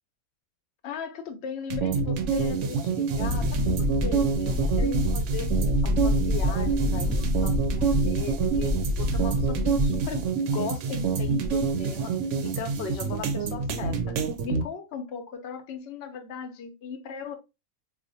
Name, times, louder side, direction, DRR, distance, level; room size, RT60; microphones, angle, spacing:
voice 1, 0.8-5.5 5.8-12.1 12.4-14.2 14.4-17.4, left 6 dB, 60° left, 0.8 m, -37 dB
sound 1, 1.7-14.6, right 5 dB, 65° right, 0.9 m, -27 dB
Wind, 3.1-10.2, left 2 dB, 30° right, 0.6 m, -28 dB
4.2 x 2.4 x 2.6 m
omnidirectional pair, 1.5 m